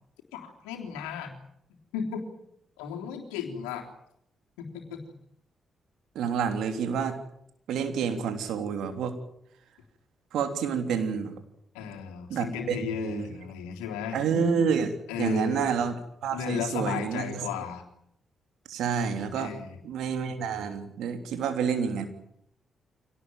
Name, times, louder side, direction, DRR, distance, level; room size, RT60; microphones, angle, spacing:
voice 1, 0.3-1.3 1.9-2.2 2.8-3.9 4.6-5.0 11.7-14.2 15.1-15.7 16.3-17.8 19.3-19.8, left 7 dB, 85° left, 2 dB, 3.4 m, -34 dB
voice 2, 6.1-7.2 7.7-9.1 10.3-11.4 12.3-13.3 14.1-16.0 16.2-17.4 18.7-19.5 19.8-22.1, right 6 dB, 75° right, 8 dB, 3.2 m, -29 dB
25.0 x 18.0 x 9.2 m, 0.74 s
hypercardioid pair, 40°, 0 cm